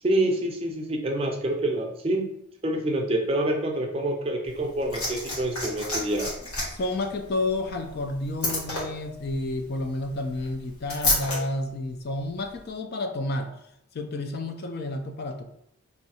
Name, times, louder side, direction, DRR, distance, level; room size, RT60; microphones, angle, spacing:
voice 1, 0.0-2.4 2.6-6.4, right 1 dB, 25° right, 2 dB, 0.4 m, -27 dB
Liquid, 4.5-11.4 12.5-12.6, left 2 dB, 85° left, 1.4 m, -31 dB
voice 2, 6.7-13.6 13.9-15.4, left 2 dB, 45° left, 6 dB, 0.3 m, -30 dB
3.1 x 2.7 x 4.2 m, 0.77 s
head